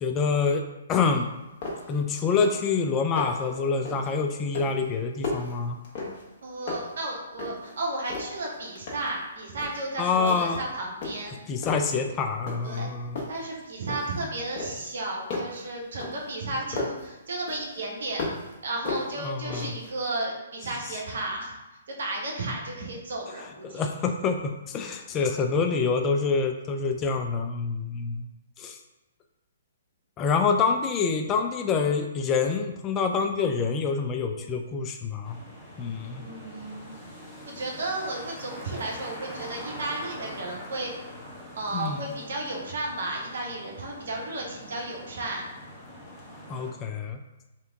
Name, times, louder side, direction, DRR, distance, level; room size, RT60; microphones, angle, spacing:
voice 1, 0.0-1.3 1.9-5.8 10.0-10.6 11.5-13.2 19.2-19.7 23.6-28.3 28.6-28.8 30.2-35.4 35.8-36.2 41.7-42.1 46.5-47.2, left 5 dB, 25° left, 5 dB, 0.3 m, -26 dB
sound 1, 1.2-1.3 1.6-2.0 2.3-2.7 3.0-3.5 3.9-4.2 4.5-6.4 6.7-7.7 8.1-9.2 9.6-9.9 10.3-10.7 11.0-12.0 12.5-12.9 13.2-14.2 14.6-17.1 17.5-18.5 18.9-19.9, left 2 dB, 40° left, 1.1 m, -35 dB
voice 2, 6.4-11.4 12.6-12.9 13.3-18.3 18.6-21.6 21.9-23.9 36.2-37.0 37.4-40.9 41.5-45.4, right 2 dB, 65° right, -1 dB, 1.0 m, -33 dB
sound 2, 35.2-46.7, left 1 dB, 5° left, 0.8 m, -44 dB
3.3 x 2.8 x 3.4 m, 1.0 s
figure-of-eight pair, 125°, 0 cm